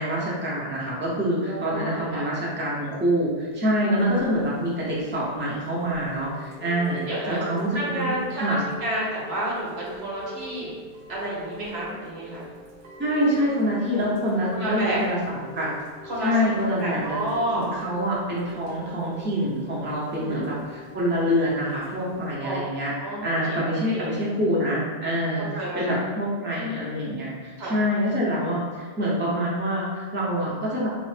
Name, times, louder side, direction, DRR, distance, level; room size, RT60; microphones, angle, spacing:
voice 1, 0.0-8.6 13.0-15.7 16.2-17.2 17.5-22.9 23.2-30.9, equal, 15° right, -6 dB, 0.6 m, -26 dB
voice 2, 1.4-2.2 4.1-4.2 6.9-7.4 7.7-10.7 11.1-12.5 13.9-14.0 14.5-15.0 16.0-17.8 20.1-20.4 22.4-22.6 23.0-23.6 23.9-24.1 25.5-26.0 27.6-27.8, right 1 dB, 80° right, -5 dB, 1.2 m, -30 dB
Chime / Rain, 4.0-22.4, left 1 dB, 60° right, 0.7 m, -43 dB
4.0 x 2.0 x 3.2 m, 1.4 s
omnidirectional pair, 1.1 m